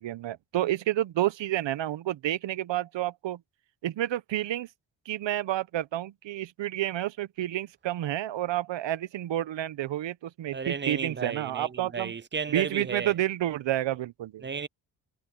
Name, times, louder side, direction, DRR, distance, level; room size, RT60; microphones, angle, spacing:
voice 1, 0.0-3.4 3.8-4.7 5.1-12.1 12.5-14.5, right 13 dB, 70° right, 1.1 m, -30 dB
voice 2, 10.5-13.1 14.4-14.7, right 5 dB, 25° right, 0.6 m, -33 dB
supercardioid pair, 50°, 46 cm